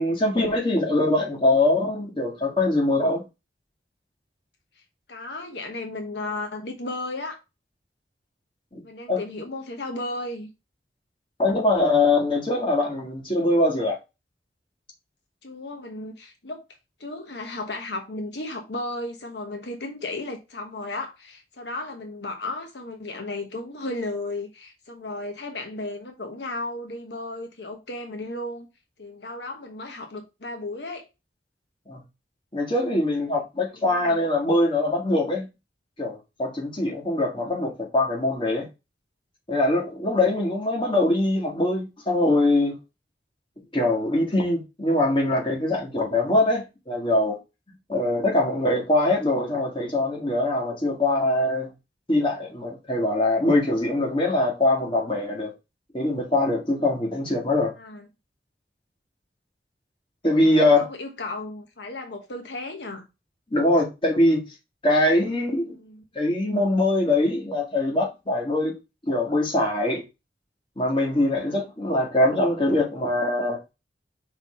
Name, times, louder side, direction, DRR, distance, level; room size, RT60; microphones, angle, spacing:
voice 1, 0.0-3.2 8.7-8.8 9.1-9.2 11.4-14.0 31.9-32.0 32.5-35.5 36.0-38.7 39.5-42.8 43.7-47.4 47.9-51.7 52.1-55.5 55.9-57.7 60.2-60.9 63.5-64.4 64.8-65.8 66.2-68.7 69.1-70.0 70.8-73.6, left 2 dB, 30° left, 1.8 m, -22 dB
voice 2, 5.1-7.4 8.8-10.5 15.4-16.6 17.0-28.7 29.0-31.0 33.8-34.2 57.8-58.1 60.2-63.1 65.7-66.0, left 2 dB, 80° left, 1.2 m, -34 dB
5.9 x 3.7 x 4.3 m
head